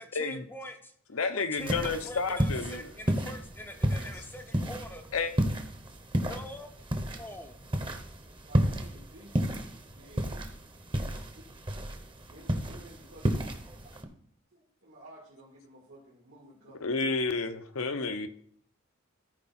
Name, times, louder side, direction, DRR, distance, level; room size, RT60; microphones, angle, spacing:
voice 1, 0.0-0.9 1.3-5.0 6.2-6.7 7.2-7.5, left 1 dB, 10° left, 0.5 m, -44 dB
voice 2, 1.1-2.8 5.1-5.3 16.8-18.3, left 4 dB, 80° left, 0.8 m, -30 dB
sound 1, 1.6-14.0, equal, 25° right, 0.9 m, -32 dB
voice 3, 7.9-10.6 11.3-11.4 12.0-13.9 14.5-17.0, right 1 dB, 80° right, 2.4 m, -54 dB
14.0 x 4.8 x 4.3 m
head